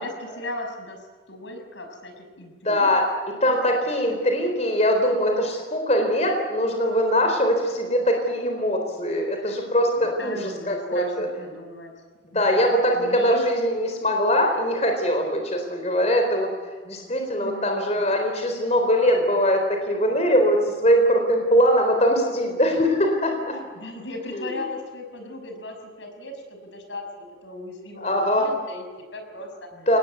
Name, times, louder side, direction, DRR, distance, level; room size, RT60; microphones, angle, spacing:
voice 1, 0.0-2.9 3.8-4.2 9.4-9.6 10.0-11.9 12.3-13.4 17.4-17.8 23.5-29.7, left 2 dB, 80° left, 4 dB, 6.2 m, -38 dB
voice 2, 2.6-3.0 3.4-11.3 12.3-16.5 16.9-23.5 24.3-24.5 28.0-28.5 29.9-30.0, equal, 35° left, 3 dB, 4.2 m, -22 dB
27.0 x 20.0 x 8.3 m, 1.4 s
head